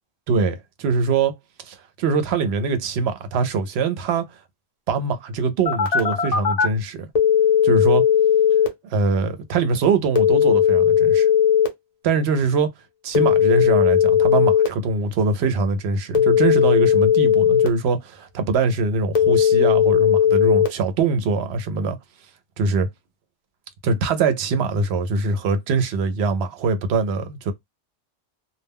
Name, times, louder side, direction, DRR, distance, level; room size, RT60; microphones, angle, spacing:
voice 1, 0.3-1.3 1.6-4.3 4.9-7.1 7.6-8.1 8.9-11.3 12.0-12.7 13.0-22.0 22.6-22.9 23.8-27.5, right 4 dB, 75° right, 0.8 m, -22 dB
Telephone, 5.7-6.7 7.2-8.7 10.2-11.7 13.1-14.7 16.1-17.7 19.2-20.7, left 9 dB, 40° left, 0.7 m, -17 dB
2.2 x 2.1 x 3.4 m
omnidirectional pair, 1.1 m